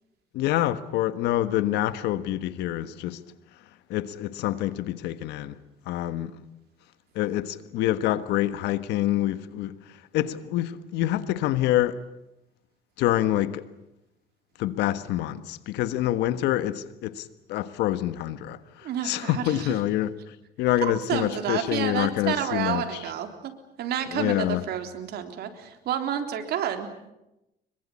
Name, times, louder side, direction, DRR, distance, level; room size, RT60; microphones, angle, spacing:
voice 1, 0.3-3.2 3.9-5.6 5.9-6.4 7.1-9.8 10.1-12.0 13.0-13.6 14.6-20.1 20.6-22.9 24.1-24.6, left 13 dB, 85° left, 1.4 m, -26 dB
voice 2, 18.8-19.8 21.1-23.5 23.8-26.9, right 9 dB, 70° right, 3.7 m, -30 dB
25.5 x 22.5 x 8.6 m
cardioid pair, 110°, 17 cm